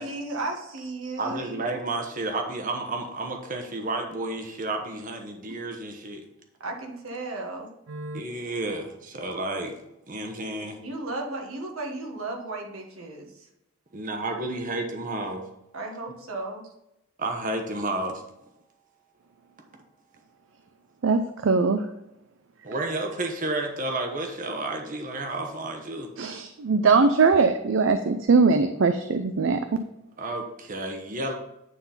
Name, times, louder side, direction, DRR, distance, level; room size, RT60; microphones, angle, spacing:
voice 1, 0.0-1.6 6.6-7.7 10.8-13.5 15.7-16.7, right 2 dB, 90° right, 1 dB, 1.5 m, -34 dB
voice 2, 1.0-6.2 8.1-9.8 10.1-10.8 13.9-15.4 17.2-18.2 22.6-26.1 30.2-31.3, right 2 dB, 40° right, 4 dB, 1.0 m, -31 dB
voice 3, 7.9-8.2 21.0-21.8 26.2-29.8, right 4 dB, 65° right, 9 dB, 0.5 m, -21 dB
9.3 x 3.9 x 5.6 m, 0.85 s
head